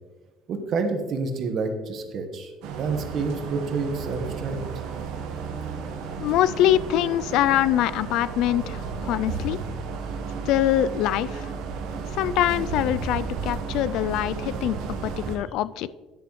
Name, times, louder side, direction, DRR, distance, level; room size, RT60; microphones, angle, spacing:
voice 1, 0.5-2.5 2.8-4.6, right 4 dB, 50° right, 6 dB, 1.2 m, -28 dB
sound 1, 2.6-15.4, right 5 dB, 80° right, 1.2 m, -33 dB
voice 2, 6.2-9.6 10.5-11.5 12.1-14.8 15.0-15.9, left 12 dB, 75° left, 17 dB, 0.3 m, -24 dB
10.5 x 6.8 x 3.1 m, 1.2 s
cardioid pair, 120°, 0 cm